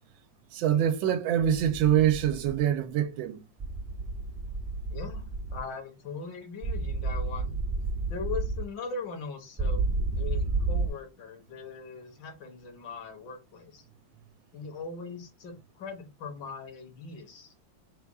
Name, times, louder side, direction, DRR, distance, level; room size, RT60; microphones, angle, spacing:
voice 1, 0.5-3.4, right 10 dB, 85° right, 1.4 m, -25 dB
sound 1, 1.7-2.6 3.6-5.6 6.6-8.6 9.6-10.9, right 3 dB, 35° right, 0.5 m, -31 dB
voice 2, 4.9-5.2 5.5-7.6 8.1-13.8 14.5-17.5, left 5 dB, 70° left, 1.8 m, -40 dB
4.1 x 2.3 x 4.6 m
omnidirectional pair, 2.1 m